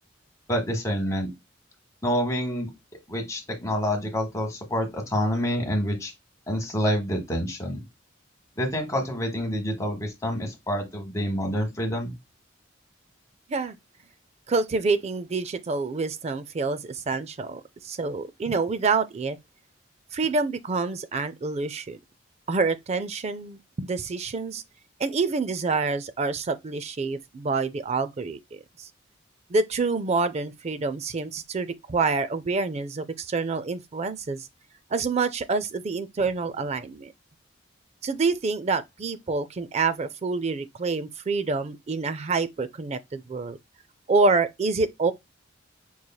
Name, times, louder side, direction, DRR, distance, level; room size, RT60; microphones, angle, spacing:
voice 1, 0.5-1.3 2.0-2.7 3.1-6.1 6.5-7.8 8.6-12.1, equal, 15° left, 1.2 m, -27 dB
voice 2, 14.5-19.4 20.1-22.0 22.5-24.6 25.0-28.9 29.5-34.5 34.9-37.1 38.0-43.6 44.1-45.1, right 4 dB, 35° right, 0.4 m, -27 dB
5.5 x 3.1 x 2.2 m
head